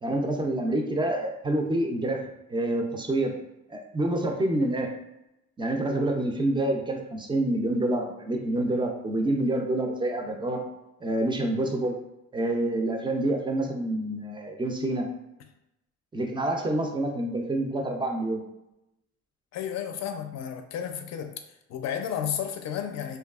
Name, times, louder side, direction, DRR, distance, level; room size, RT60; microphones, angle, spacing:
voice 1, 0.0-3.3 3.7-4.9 5.6-10.6 11.0-12.0 12.3-15.0 16.1-18.4, right 1 dB, 15° right, 2 dB, 0.4 m, -27 dB
voice 2, 19.5-21.3 21.7-23.2, left 9 dB, 60° left, 6 dB, 0.5 m, -32 dB
2.7 x 2.3 x 2.3 m, 0.88 s
cardioid pair, 90°, 30 cm